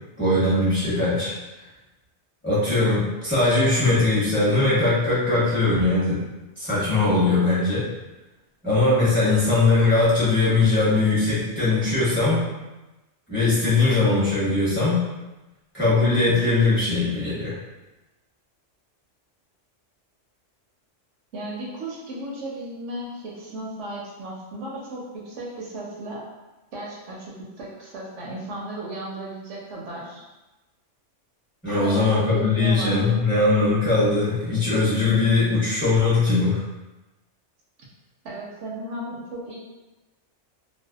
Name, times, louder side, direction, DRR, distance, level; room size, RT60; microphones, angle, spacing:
voice 1, 0.2-1.4 2.4-6.2 6.6-7.9 8.6-12.5 13.3-15.0 15.7-17.6 31.6-36.6, left 3 dB, 10° left, -12 dB, 0.9 m, -20 dB
voice 2, 21.3-26.2 26.7-30.2 31.7-33.3 38.2-39.6, right 1 dB, 75° right, -4 dB, 0.9 m, -35 dB
2.6 x 2.2 x 2.3 m, 1.1 s
omnidirectional pair, 1.3 m